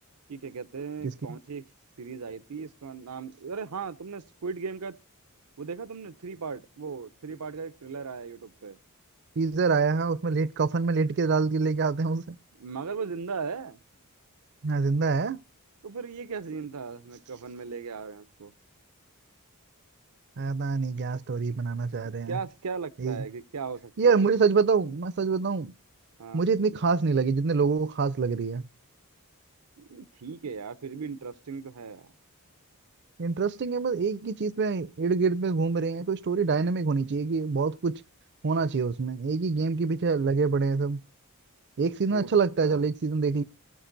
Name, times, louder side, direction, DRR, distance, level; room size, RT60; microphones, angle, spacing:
voice 1, 0.3-1.7 2.0-5.0 5.6-8.8 12.6-13.8 15.8-18.5 22.3-24.2 26.2-26.5 29.8-32.1 42.1-42.3 42.6-42.9, right 5 dB, 90° right, 0.7 m, -37 dB
voice 2, 9.4-12.4 14.6-15.4 20.4-22.4 23.0-23.2 24.0-25.7 26.3-28.6 33.2-38.0 38.4-41.0 41.8-43.4, right 4 dB, 50° right, 0.5 m, -26 dB
18.5 x 6.6 x 3.9 m
head